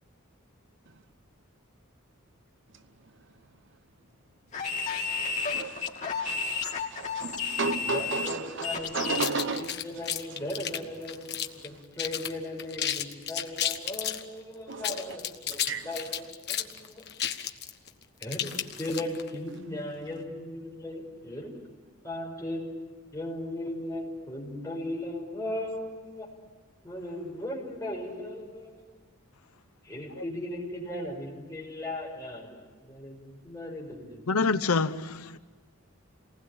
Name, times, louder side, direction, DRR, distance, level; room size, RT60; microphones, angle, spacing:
sound 1, 4.5-9.4, left 5 dB, 35° left, 2.7 m, -32 dB
voice 1, 5.5-6.3 6.6-9.7 14.7-15.0 15.7-15.9, right 4 dB, 55° right, 1.0 m, -33 dB
voice 2, 7.9-17.0 18.2-21.6 22.0-26.3 26.8-28.8 29.8-34.3, left 1 dB, 15° left, 5.7 m, -37 dB
sound 2, 9.1-11.7 12.0-12.3 12.6-14.2 14.7-19.3, left 10 dB, 50° left, 1.3 m, -32 dB
voice 3, 34.3-35.4, left 4 dB, 90° left, 0.9 m, -26 dB
28.5 x 20.0 x 8.8 m
head